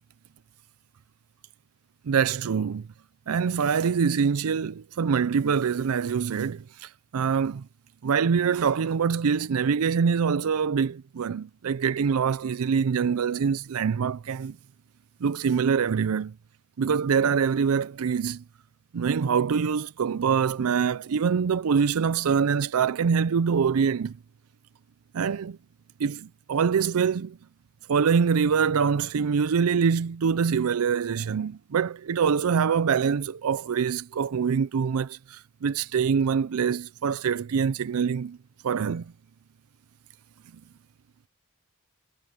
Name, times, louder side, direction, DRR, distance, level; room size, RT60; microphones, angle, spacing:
voice 1, 2.1-2.9 3.3-7.6 8.0-14.6 15.2-16.3 16.8-18.4 18.9-24.1 25.1-25.6 26.0-27.4 27.9-38.4 38.6-39.1, right 6 dB, 70° right, 0.4 m, -24 dB
head